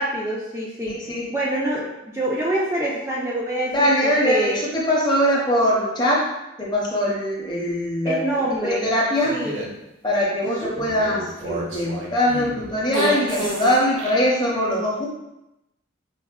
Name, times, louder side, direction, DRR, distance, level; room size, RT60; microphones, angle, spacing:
voice 1, 0.0-0.9 1.3-4.6 8.0-8.9 9.3-9.6 10.4-10.8, right 1 dB, 15° right, -6 dB, 0.3 m, -26 dB
voice 2, 0.8-1.3 3.7-6.2 6.6-8.2 8.6-9.4 10.0-15.1, equal, 20° left, -4 dB, 0.6 m, -22 dB
Poem with farts, 9.2-9.7 10.5-14.1, right 2 dB, 70° right, 0.6 m, -30 dB
4.6 x 2.0 x 2.3 m, 0.91 s
head